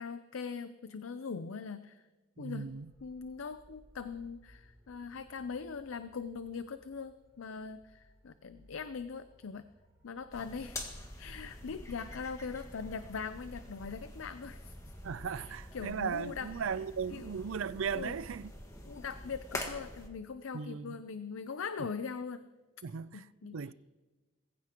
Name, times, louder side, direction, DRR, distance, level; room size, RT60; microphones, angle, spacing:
voice 1, 0.0-2.1 2.4-2.7 3.0-9.6 10.0-14.7 15.4-16.5 17.1-17.3 17.9-18.2 18.8-22.4 23.1-23.7, left 5 dB, 75° left, 0.5 m, -41 dB
voice 2, 2.4-2.9 15.0-18.5 20.5-21.0 22.8-23.2 23.5-23.7, right 6 dB, 70° right, 0.5 m, -37 dB
sound 1, 2.5-19.5, equal, 15° right, 3.6 m, -62 dB
sound 2, 10.3-20.1, left 1 dB, 15° left, 1.6 m, -46 dB
21.0 x 15.0 x 3.0 m
head